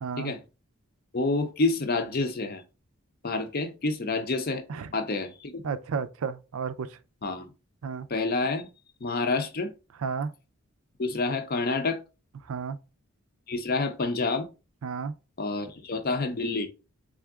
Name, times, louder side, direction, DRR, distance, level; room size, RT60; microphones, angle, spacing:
voice 1, 0.0-0.3 4.7-4.9 5.6-7.0 7.8-8.1 10.0-10.3 12.5-12.8 14.8-15.1, right 5 dB, 70° right, 0.4 m, -32 dB
voice 2, 1.1-2.6 3.2-4.6 4.9-5.6 7.2-7.5 8.1-8.6 9.0-9.7 11.0-12.0 13.5-14.5 15.4-16.7, left 3 dB, 40° left, 0.6 m, -28 dB
3.7 x 3.4 x 3.5 m
head